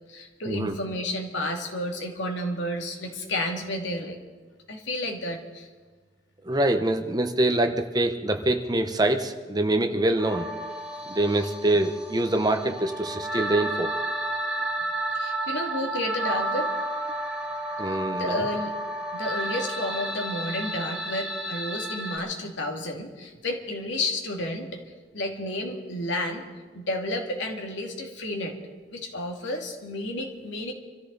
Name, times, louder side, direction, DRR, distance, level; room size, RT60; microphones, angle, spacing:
voice 1, 0.1-4.2 4.7-5.7 15.1-16.7 17.9-18.7 19.1-24.7 25.1-26.4 26.7-28.6 28.9-30.7, left 1 dB, 85° left, 2 dB, 2.5 m, -31 dB
voice 2, 6.4-10.5 11.1-13.9 17.8-18.4, right 1 dB, 20° right, 6 dB, 1.0 m, -25 dB
sound 1, 10.2-22.2, right 1 dB, 5° right, 2.3 m, -31 dB
25.5 x 14.0 x 4.1 m, 1.4 s
head